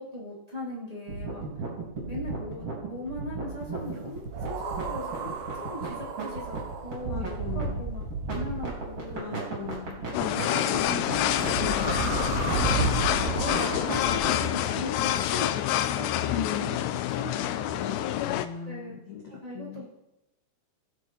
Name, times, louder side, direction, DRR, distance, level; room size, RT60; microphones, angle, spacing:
voice 1, 0.0-1.6 2.0-6.6 6.8-8.1 8.3-9.7 10.0-16.8 17.1-18.2 18.7-19.0 19.4-19.8, left 1 dB, 10° right, -5 dB, 2.4 m, -39 dB
sound 1, 1.1-14.5, right 4 dB, 35° right, 4.9 m, -35 dB
sound 2, 4.3-9.0 11.4-14.2, right 4 dB, 65° right, 2.1 m, -32 dB
voice 2, 7.1-7.8 9.1-10.0 13.1-13.7 17.8-19.8, left 7 dB, 65° left, 0 dB, 1.8 m, -40 dB
sound 3, 10.1-18.5, left 12 dB, 85° left, 2.7 m, -27 dB
19.0 x 9.2 x 4.2 m, 0.92 s
omnidirectional pair, 5.0 m